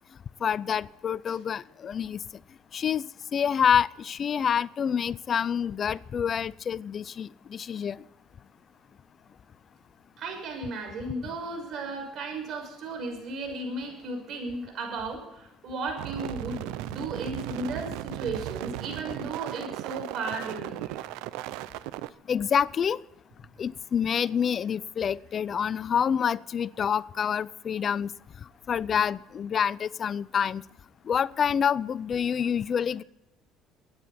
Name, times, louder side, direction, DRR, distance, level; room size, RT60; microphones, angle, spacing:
voice 1, 0.4-2.2 2.7-3.0 3.3-8.0 11.3-11.4 22.3-23.0 23.6-28.1 28.7-30.6 31.1-33.0, left 7 dB, 45° left, 0.5 m, -27 dB
voice 2, 10.2-21.1, right 2 dB, 55° right, 6.2 m, -35 dB
sound 1, 16.0-22.1, right 16 dB, 85° right, 0.5 m, -36 dB
23.5 x 9.5 x 4.2 m
supercardioid pair, 90°, 0 cm